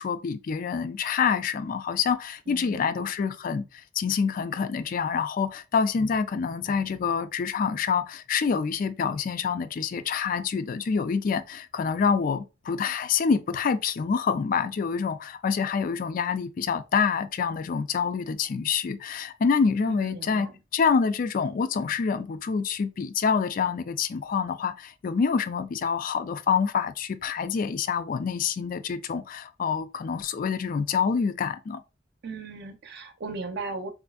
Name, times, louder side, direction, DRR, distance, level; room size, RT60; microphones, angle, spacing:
voice 1, 0.0-3.6 4.0-20.5 20.7-31.8, left 6 dB, 45° left, 0.3 m, -26 dB
voice 2, 2.5-3.1 19.9-20.6 32.2-33.9, right 3 dB, 60° right, 0.6 m, -37 dB
4.1 x 2.5 x 2.3 m
head